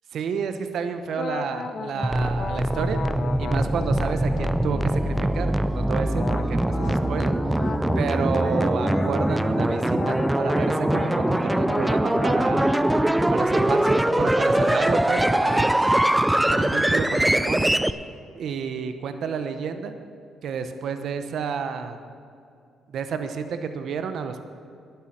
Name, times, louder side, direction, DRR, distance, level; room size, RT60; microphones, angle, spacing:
voice 1, 0.1-3.0 3.4-7.3 8.0-12.7 13.3-15.8 16.4-17.7 18.4-19.9 20.4-22.0 22.9-24.5, right 6 dB, 70° right, 8 dB, 0.9 m, -30 dB
sound 1, 1.1-5.5 6.1-13.4, left 5 dB, 50° left, 0.6 m, -36 dB
sound 2, 2.0-17.9, right 1 dB, 10° right, 0.4 m, -22 dB
11.5 x 10.5 x 6.5 m, 2.4 s
cardioid pair, 90°, 0 cm